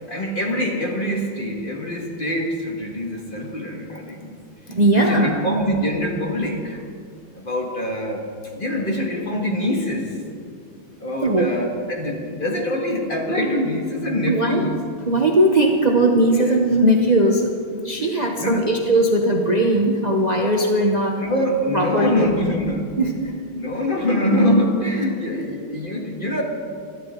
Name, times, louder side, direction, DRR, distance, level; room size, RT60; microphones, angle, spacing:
voice 1, 0.1-4.4 4.9-6.8 7.4-8.2 8.5-10.1 11.0-14.8 16.4-16.5 18.0-18.7 21.2-22.9 23.5-26.4, left 1 dB, 25° left, 0 dB, 2.0 m, -24 dB
voice 2, 4.7-5.4 11.2-11.5 14.3-14.6 15.1-21.2 21.7-22.3 23.0-23.3, right 1 dB, 55° right, 1 dB, 0.4 m, -19 dB
26.5 x 11.0 x 3.8 m, 2.3 s
omnidirectional pair, 2.2 m